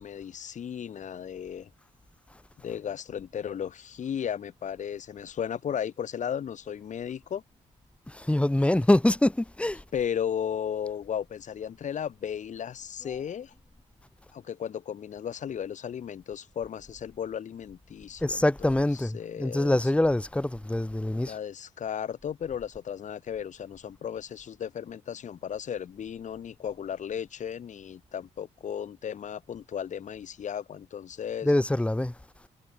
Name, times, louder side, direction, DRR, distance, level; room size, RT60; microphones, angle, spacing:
voice 1, 0.0-1.7 2.6-7.4 9.9-13.5 14.3-19.9 21.1-31.5, left 8 dB, 60° left, 3.2 m, -35 dB
voice 2, 8.1-9.8 13.0-13.2 18.2-21.3 31.4-32.1, left 1 dB, 10° left, 1.4 m, -25 dB
cardioid pair, 70°, 14 cm